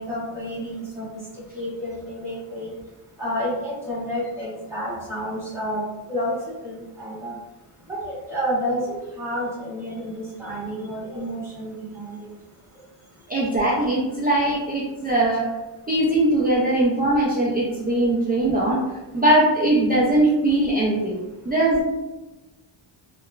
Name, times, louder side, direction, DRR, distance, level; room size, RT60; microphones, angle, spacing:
voice 1, 0.0-2.7 3.2-5.8 6.1-6.4 6.6-7.4 7.9-12.3, equal, 5° right, -9 dB, 1.2 m, -30 dB
voice 2, 13.3-15.5 15.9-21.1 21.4-21.8, right 1 dB, 20° right, -7 dB, 0.3 m, -20 dB
2.8 x 2.2 x 2.3 m, 1.1 s
wide cardioid pair, 135°, 48 cm